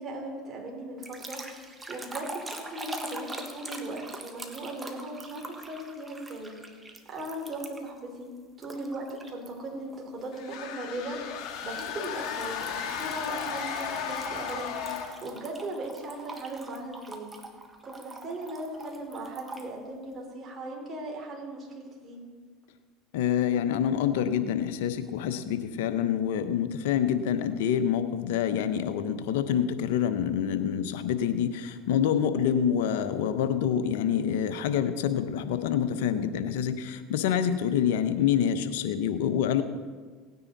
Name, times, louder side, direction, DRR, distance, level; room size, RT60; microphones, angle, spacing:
voice 1, 0.0-6.6 7.1-8.3 8.6-17.3 17.8-22.2, right 1 dB, 35° right, -1 dB, 4.4 m, -38 dB
sound 1, 1.0-8.0 8.6-9.5 9.9-10.2 11.8-19.7, right 2 dB, 15° right, 1.5 m, -43 dB
sound 2, 10.3-15.3, left 7 dB, 55° left, 2.0 m, -35 dB
voice 2, 23.1-39.6, left 9 dB, 75° left, 10 dB, 1.0 m, -27 dB
18.0 x 9.6 x 4.1 m, 1.5 s
hypercardioid pair, 90°, 0 cm